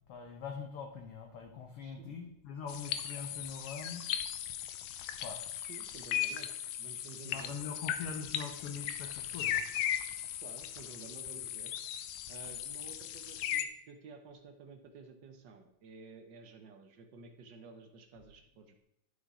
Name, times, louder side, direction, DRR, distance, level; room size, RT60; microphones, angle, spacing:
voice 1, 0.1-4.0 5.2-5.4 7.2-9.6, left 5 dB, 65° left, 2 dB, 1.6 m, -43 dB
voice 2, 1.8-2.1 5.6-6.5 6.8-7.6 10.4-11.8 12.3-18.8, right 4 dB, 70° right, 5 dB, 1.0 m, -52 dB
sound 1, 2.7-13.6, left 10 dB, 90° left, 2.1 m, -37 dB
11.5 x 6.2 x 4.8 m, 0.79 s
omnidirectional pair, 3.3 m